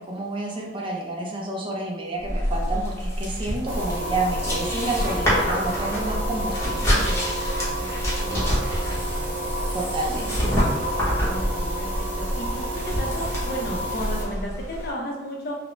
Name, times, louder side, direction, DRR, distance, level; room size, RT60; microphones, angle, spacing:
voice 1, 0.0-6.9 9.7-10.6, right 2 dB, 30° right, -1 dB, 0.4 m, -29 dB
sound 1, 2.2-14.9, equal, 15° left, 0.7 m, -27 dB
sound 2, 3.7-14.2, right 1 dB, 10° right, 1.1 m, -30 dB
voice 2, 7.0-7.4 7.8-9.1 11.2-15.6, equal, 55° left, -1 dB, 0.6 m, -34 dB
2.4 x 2.0 x 3.0 m, 1.1 s
head